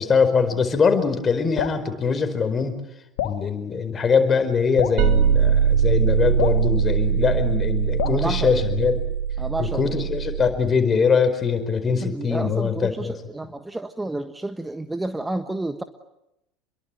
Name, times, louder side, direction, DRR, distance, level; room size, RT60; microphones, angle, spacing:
voice 1, 0.0-2.8 3.2-9.0 9.6-13.1, left 5 dB, 25° left, 8 dB, 4.7 m, -22 dB
Drip, 1.6-1.8 3.2-3.4 4.8-5.0 6.4-6.6 8.0-8.2, left 11 dB, 65° left, 1.9 m, -27 dB
sound 1, 5.0-10.5, right 8 dB, 50° right, 3.6 m, -22 dB
voice 2, 8.0-8.6 9.4-10.1 12.0-15.8, right 2 dB, 10° right, 9 dB, 1.4 m, -30 dB
29.0 x 22.5 x 9.0 m, 0.88 s
figure-of-eight pair, 70°, 0 cm